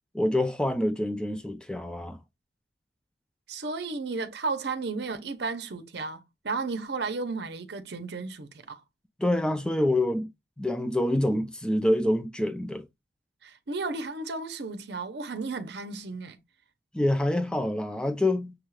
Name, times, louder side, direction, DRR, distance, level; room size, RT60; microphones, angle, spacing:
voice 1, 0.1-2.2 9.2-10.3 10.6-12.8 16.9-18.5, left 1 dB, 5° left, 0.4 m, -26 dB
voice 2, 3.5-8.8 13.4-16.4, right 3 dB, 70° right, 0.7 m, -33 dB
6.3 x 2.4 x 3.1 m
head